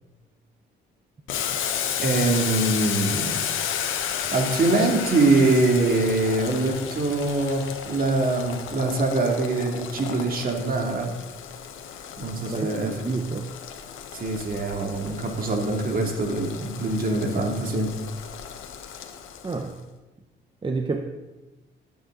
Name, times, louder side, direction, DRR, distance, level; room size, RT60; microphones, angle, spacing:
Boiling, 1.3-19.7, left 8 dB, 85° left, 1.4 m, -33 dB
voice 1, 2.0-3.4 4.3-11.1 12.2-13.0 14.1-17.9, right 2 dB, 45° right, 2 dB, 2.8 m, -23 dB
voice 2, 12.5-13.6 19.4-19.8 20.6-21.0, right 3 dB, 25° right, 5 dB, 1.0 m, -29 dB
18.5 x 8.7 x 4.0 m, 1.1 s
cardioid pair, 90°, 20 cm